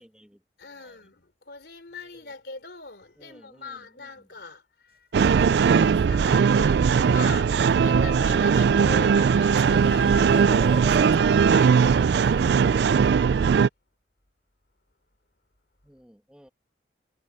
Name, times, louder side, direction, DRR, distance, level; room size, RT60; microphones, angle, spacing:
voice 1, 0.0-0.4 0.8-1.1 2.1-2.3 3.2-4.3 15.8-16.5, equal, 5° right, 1.5 m, -55 dB
voice 2, 0.6-12.5, left 3 dB, 65° left, 3.4 m, -41 dB
sound 1, 5.1-13.7, right 6 dB, 65° right, 0.3 m, -19 dB
sound 2, 5.5-7.2 7.7-9.3 9.7-11.1 11.9-12.7, right 2 dB, 35° right, 5.0 m, -40 dB
head